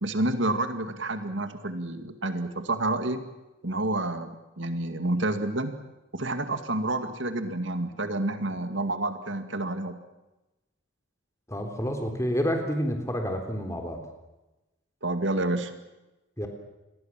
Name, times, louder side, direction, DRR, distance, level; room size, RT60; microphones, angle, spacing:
voice 1, 0.0-3.2 3.6-5.7 6.1-10.0 15.0-15.7, right 2 dB, 65° right, 8 dB, 2.2 m, -29 dB
voice 2, 11.5-14.0 16.4-16.5, equal, 15° left, 5 dB, 3.5 m, -29 dB
28.0 x 21.0 x 7.6 m, 1.0 s
head